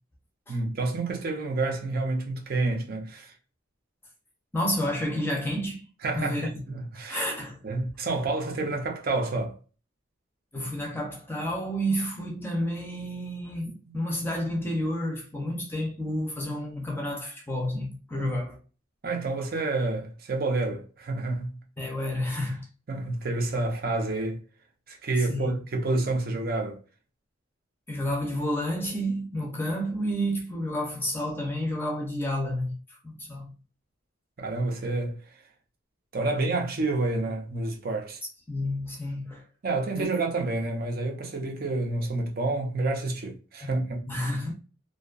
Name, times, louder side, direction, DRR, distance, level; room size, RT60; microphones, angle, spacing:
voice 1, 0.5-3.3 6.0-7.3 7.6-9.5 18.2-18.3 19.0-21.5 22.9-24.4 24.9-26.8 34.4-35.2 36.1-38.2 39.6-44.0, right 2 dB, 45° right, 0.6 m, -29 dB
voice 2, 4.5-5.8 6.1-6.6 7.1-7.6 10.5-18.6 21.8-22.7 25.2-25.5 27.9-33.5 38.5-39.4 39.9-40.1 43.6-43.7 44.1-44.5, equal, 10° left, 0.5 m, -30 dB
2.5 x 2.3 x 2.4 m
head